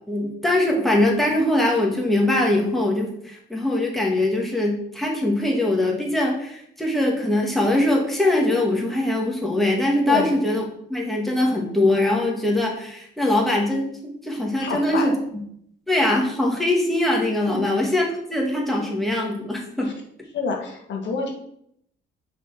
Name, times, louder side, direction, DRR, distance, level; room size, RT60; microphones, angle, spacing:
voice 1, 0.1-10.6 10.9-13.9 14.2-15.1 15.9-18.0 18.3-19.9, left 1 dB, ahead, -2 dB, 1.8 m, -22 dB
voice 2, 14.6-15.2 17.5-17.8 19.8-19.9 20.3-21.3, left 4 dB, 65° left, 1 dB, 1.3 m, -27 dB
5.5 x 4.2 x 4.9 m, 0.71 s
cardioid pair, 90°, 20 cm